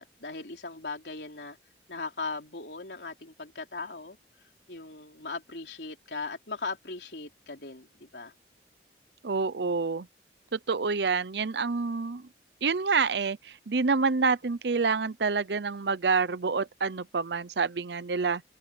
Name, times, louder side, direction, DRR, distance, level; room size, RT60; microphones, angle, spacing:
voice 1, 0.0-1.6 1.9-4.2 4.7-8.3, left 3 dB, 75° left, 3.5 m, -38 dB
voice 2, 9.2-10.1 10.5-12.2 12.6-18.4, right 4 dB, 70° right, 0.7 m, -27 dB
open air
head